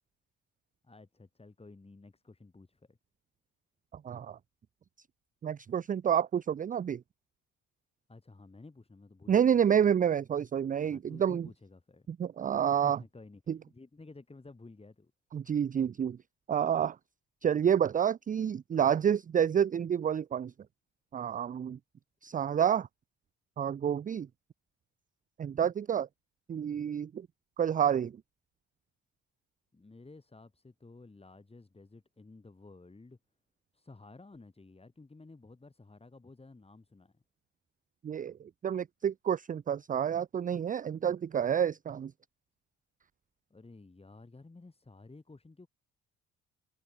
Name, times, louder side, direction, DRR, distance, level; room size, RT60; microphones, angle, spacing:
voice 1, 0.8-3.0 8.1-9.6 10.8-12.1 12.7-13.4 13.7-15.1 29.7-33.2 33.7-37.2 43.5-45.7, left 3 dB, 20° left, 5.4 m, -53 dB
voice 2, 3.9-4.4 5.4-7.0 9.3-11.5 12.1-13.0 13.5-13.6 15.3-16.2 16.5-17.0 17.4-20.5 21.1-21.8 22.2-22.9 23.6-24.3 25.4-26.1 26.5-27.3 27.6-28.2 38.0-42.1, right 8 dB, 30° right, 0.4 m, -29 dB
cardioid pair, 90°, 30 cm